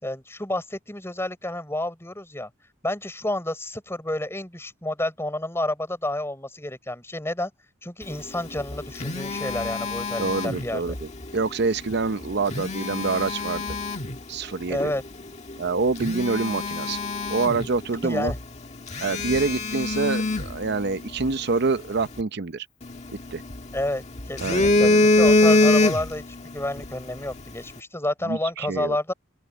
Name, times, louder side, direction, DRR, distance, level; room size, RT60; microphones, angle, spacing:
voice 1, 0.0-2.5 2.8-7.5 7.8-10.9 14.7-15.0 18.0-18.4 18.9-19.0 23.7-26.2 26.5-29.1, left 1 dB, 10° left, 6.5 m, -30 dB
Telephone, 8.5-11.0 12.3-14.2 14.8-15.0 15.5-15.6 16.0-18.0 18.3-18.4 18.9-21.3 22.8-23.8 24.2-26.3 26.6-26.9, left 2 dB, 35° left, 1.7 m, -23 dB
voice 2, 10.2-11.1 11.3-13.6 14.3-14.8 15.6-17.0 17.3-18.3 19.0-22.7 23.3-23.4 24.4-25.1 28.2-29.0, right 4 dB, 55° right, 0.7 m, -26 dB
open air
head